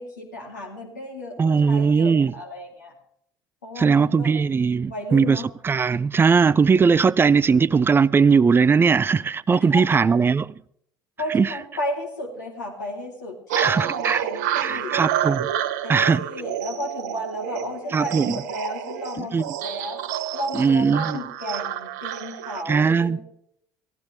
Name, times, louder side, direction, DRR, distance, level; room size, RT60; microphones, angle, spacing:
voice 1, 0.0-2.9 3.6-4.3 4.8-5.5 9.6-10.2 11.2-15.0 15.8-20.0 20.3-23.2, left 1 dB, 85° left, 3.3 m, -33 dB
voice 2, 1.4-2.3 3.8-10.5 11.3-11.5 13.6-14.2 14.6-15.5 15.9-16.2 17.9-18.4 19.2-19.4 20.5-21.2 22.7-23.2, right 5 dB, 25° right, 0.5 m, -19 dB
sound 1, 13.5-22.6, right 10 dB, 70° right, 0.9 m, -29 dB
18.0 x 15.0 x 3.5 m
figure-of-eight pair, 60°, 10 cm